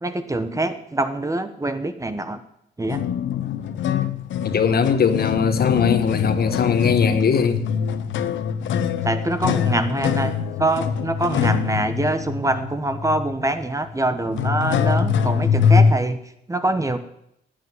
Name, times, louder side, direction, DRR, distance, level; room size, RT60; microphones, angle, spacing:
voice 1, 0.0-2.4 2.8-3.0 9.0-10.3 10.6-16.2 16.5-17.0, right 2 dB, 15° right, 10 dB, 1.2 m, -24 dB
sound 1, 2.9-15.9, left 7 dB, 75° left, 0.9 m, -23 dB
voice 2, 4.4-7.6, left 6 dB, 50° left, 9 dB, 1.5 m, -20 dB
11.5 x 8.7 x 9.5 m, 0.77 s
cardioid pair, 90°, 20 cm